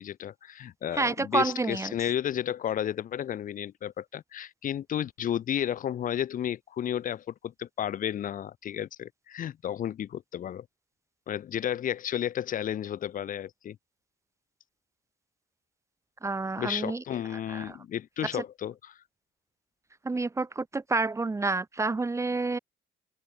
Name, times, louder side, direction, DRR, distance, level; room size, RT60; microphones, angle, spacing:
voice 1, 0.0-10.7 11.3-13.8 16.6-19.0, left 10 dB, 50° left, 1.9 m, -32 dB
voice 2, 0.9-1.9 16.2-17.0 17.3-17.8 20.0-22.6, right 3 dB, 15° right, 1.5 m, -29 dB
open air
cardioid pair, 110°, 17 cm